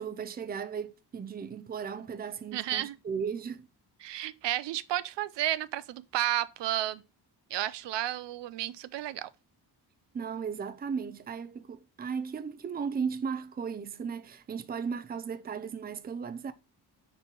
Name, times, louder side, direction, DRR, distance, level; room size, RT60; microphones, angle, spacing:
voice 1, 0.0-3.7 10.1-16.5, right 6 dB, 25° right, 0.5 m, -36 dB
voice 2, 2.5-3.0 4.0-7.0 7.5-9.3, right 13 dB, 85° right, 0.6 m, -32 dB
5.4 x 4.1 x 6.0 m
wide cardioid pair, 150°, 42 cm